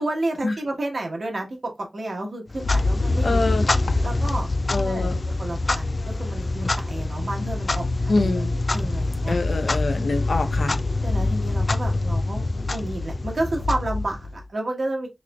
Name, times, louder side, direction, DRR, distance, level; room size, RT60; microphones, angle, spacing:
voice 1, 0.0-3.6 4.0-4.5 4.8-8.4 8.7-9.4 11.0-15.1, right 2 dB, 70° right, 1.2 m, -31 dB
Clock, 2.5-14.4, left 2 dB, 50° left, 0.3 m, -25 dB
voice 2, 3.2-3.6 4.7-5.2 8.1-8.5 9.3-10.8, left 3 dB, 85° left, 0.7 m, -25 dB
4.0 x 3.1 x 2.3 m
wide cardioid pair, 90°, 0 cm